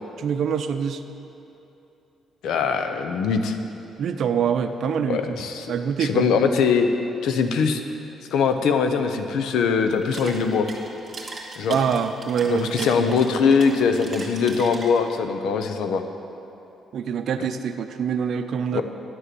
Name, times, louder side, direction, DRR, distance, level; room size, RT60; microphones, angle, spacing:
voice 1, 0.2-1.0 4.0-5.4 5.7-6.3 11.7-13.1 16.9-18.8, right 7 dB, 65° right, 8 dB, 0.6 m, -25 dB
voice 2, 2.4-3.6 5.1-5.7 6.0-6.9 7.2-7.8 8.3-10.7 11.6-11.8 12.5-16.0 18.7-18.8, left 5 dB, 80° left, 7 dB, 0.8 m, -22 dB
sound 1, 9.9-15.2, right 3 dB, 35° right, 2.3 m, -38 dB
10.5 x 6.9 x 7.7 m, 2.8 s
cardioid pair, 90°, 0 cm